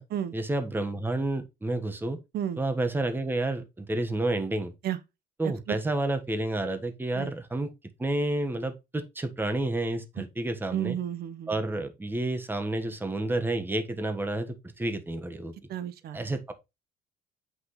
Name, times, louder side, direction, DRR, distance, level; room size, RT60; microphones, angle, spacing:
voice 1, 0.3-2.2 2.5-4.7 5.4-7.7 8.0-11.0 11.5-15.5 16.1-16.5, right 2 dB, 10° right, 1.4 m, -30 dB
voice 2, 10.7-11.5 15.7-16.2, right 10 dB, 65° right, 1.2 m, -32 dB
8.4 x 6.1 x 3.2 m
cardioid pair, 110°, 17 cm